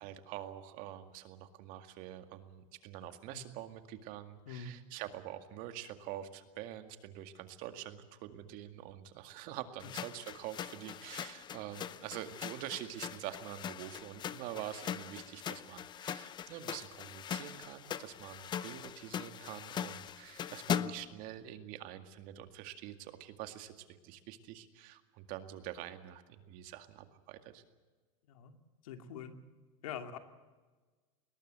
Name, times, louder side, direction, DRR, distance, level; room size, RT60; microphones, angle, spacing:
voice 1, 0.0-27.6, right 12 dB, 50° right, 8 dB, 2.1 m, -46 dB
sound 1, 9.8-21.1, left 9 dB, 25° left, 0.8 m, -41 dB
voice 2, 28.8-29.4 29.8-30.2, left 7 dB, 85° left, 6 dB, 2.6 m, -44 dB
21.5 x 19.5 x 8.1 m, 1.3 s
supercardioid pair, 135°, 18 cm